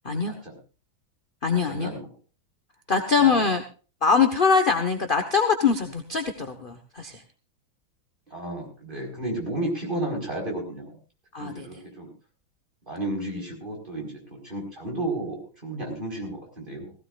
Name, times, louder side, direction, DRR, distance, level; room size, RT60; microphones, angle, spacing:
voice 1, 0.1-0.5 1.7-2.1 3.2-3.5 8.3-11.0 11.4-12.1 12.9-16.9, right 1 dB, 25° right, 0 dB, 5.2 m, -33 dB
voice 2, 1.4-1.9 2.9-3.6 4.0-7.2 11.3-11.7, left 5 dB, 30° left, 5 dB, 1.2 m, -23 dB
19.0 x 16.5 x 2.5 m, 0.35 s
omnidirectional pair, 2.2 m